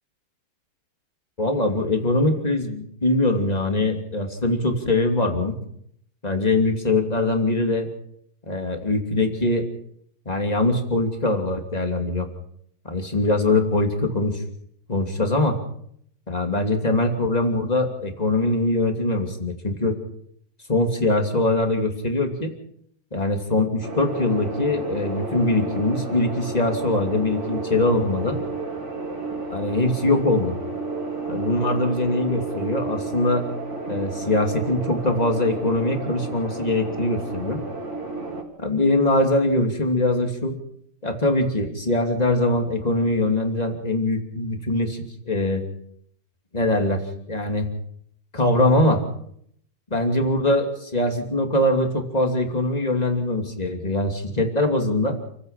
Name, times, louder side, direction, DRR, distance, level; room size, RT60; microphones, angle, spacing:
voice 1, 1.4-5.5 6.2-7.9 8.5-9.6 10.3-12.3 12.8-14.4 14.9-15.6 16.3-20.0 20.7-22.5 23.1-28.4 29.5-30.5 31.3-33.4 33.9-37.6 38.6-40.5 41.0-45.6 46.5-47.0 47.3-47.7 48.3-49.0 49.9-55.2, left 2 dB, 20° left, 4 dB, 2.8 m, -22 dB
sound 1, 23.8-38.4, right 3 dB, 30° right, 3.7 m, -31 dB
29.0 x 16.0 x 5.8 m, 0.69 s
omnidirectional pair, 2.4 m